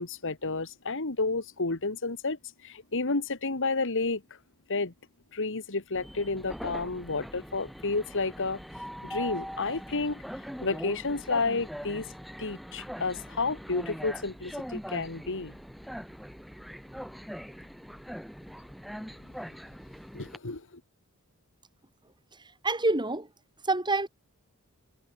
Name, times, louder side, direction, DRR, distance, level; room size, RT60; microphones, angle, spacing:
voice 1, 0.0-4.2 4.7-4.9 5.3-8.6 9.0-10.2 10.6-12.1 12.4-15.6 20.1-20.8, left 3 dB, 60° left, 1.9 m, -31 dB
Train, 5.9-20.4, equal, ahead, 5.8 m, -42 dB
voice 2, 22.6-23.3 23.6-24.1, right 2 dB, 20° right, 7.5 m, -26 dB
head